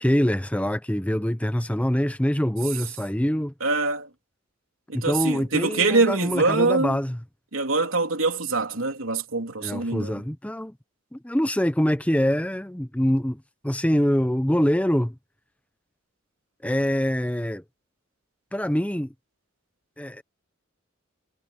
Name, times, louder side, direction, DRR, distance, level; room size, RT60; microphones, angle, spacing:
voice 1, 0.0-3.5 4.9-7.2 9.6-10.8 11.1-15.1 16.6-17.6 18.5-19.1 20.0-20.2, equal, 5° left, 0.9 m, -24 dB
voice 2, 3.6-4.1 4.9-7.0 7.5-10.2, right 3 dB, 85° right, 3.3 m, -24 dB
head